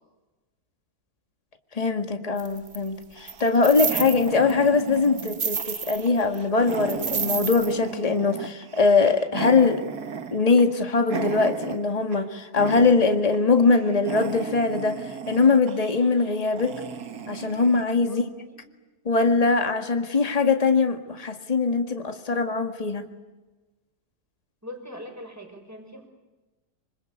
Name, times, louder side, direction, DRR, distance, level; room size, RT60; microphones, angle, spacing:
voice 1, 1.8-9.8 10.3-15.0 15.3-16.8 17.3-18.2 19.1-23.0, left 4 dB, 25° left, 6 dB, 1.9 m, -22 dB
sound 1, 2.4-2.8 3.3-4.5 4.9-6.1 6.3-6.4 6.7-7.7, right 6 dB, 50° right, 1.6 m, -29 dB
sound 2, 3.2-12.3 12.6-13.4 13.7-17.9, right 6 dB, 70° right, 2.0 m, -36 dB
voice 2, 18.0-18.6 24.6-26.1, left 1 dB, 10° right, 4 dB, 5.6 m, -42 dB
26.0 x 26.0 x 8.4 m, 1.2 s
omnidirectional pair, 1.7 m